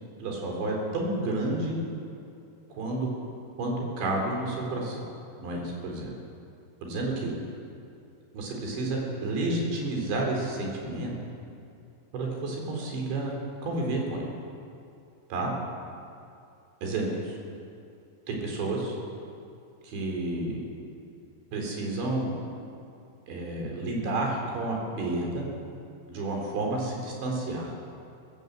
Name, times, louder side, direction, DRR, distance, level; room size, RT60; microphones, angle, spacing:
voice 1, 0.2-1.8 2.7-3.1 3.6-5.1 5.4-6.1 6.8-7.3 8.3-11.1 12.1-13.3 13.6-14.3 15.3-15.5 16.8-17.4 18.3-19.0 19.8-20.7 21.5-22.3 23.3-25.5 26.1-27.7, right 2 dB, 85° right, 0 dB, 6.1 m, -30 dB
22.0 x 15.5 x 8.1 m, 2.5 s
omnidirectional pair, 5.0 m